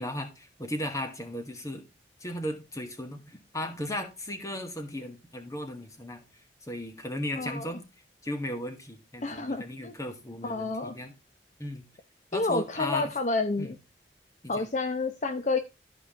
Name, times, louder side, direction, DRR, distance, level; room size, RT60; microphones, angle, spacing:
voice 1, 0.0-1.8 2.2-6.2 6.7-7.8 8.2-11.1 11.6-11.9 12.3-13.1 13.6-13.7 14.4-14.7, left 1 dB, 20° left, 1.7 m, -36 dB
voice 2, 7.4-7.7 9.2-9.9 10.4-10.9 12.3-13.8 14.5-15.6, left 3 dB, 45° left, 0.8 m, -29 dB
13.5 x 5.0 x 3.6 m
head